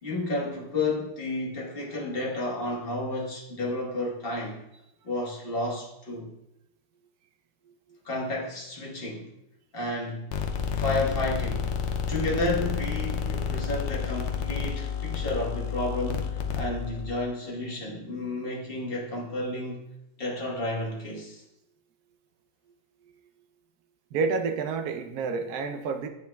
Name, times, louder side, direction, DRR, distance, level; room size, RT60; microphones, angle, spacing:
voice 1, 0.0-4.6 5.0-6.3 8.0-9.3 9.7-10.3 10.7-11.7 12.1-19.8 20.2-21.4, left 2 dB, 35° left, -3 dB, 1.5 m, -31 dB
sound 1, 10.3-17.1, left 7 dB, 65° left, 0.7 m, -30 dB
voice 2, 24.1-26.1, right 4 dB, 75° right, 7 dB, 1.2 m, -29 dB
8.9 x 5.4 x 2.3 m, 0.85 s
omnidirectional pair, 1.7 m